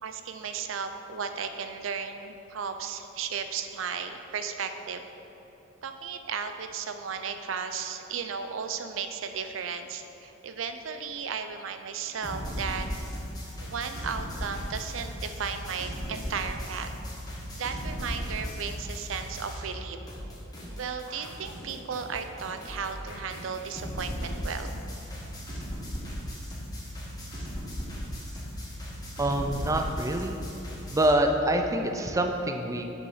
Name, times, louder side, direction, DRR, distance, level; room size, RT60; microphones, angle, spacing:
voice 1, 0.0-5.0 5.8-12.9 13.6-16.9 17.5-20.0 20.8-24.8, right 6 dB, 85° right, 8 dB, 0.5 m, -35 dB
sound 1, 12.2-19.8 20.1-31.1, equal, 20° left, 1.5 m, -37 dB
voice 2, 29.2-30.4 30.9-32.8, right 1 dB, 15° right, 4 dB, 0.4 m, -26 dB
6.2 x 5.4 x 5.6 m, 3.0 s
head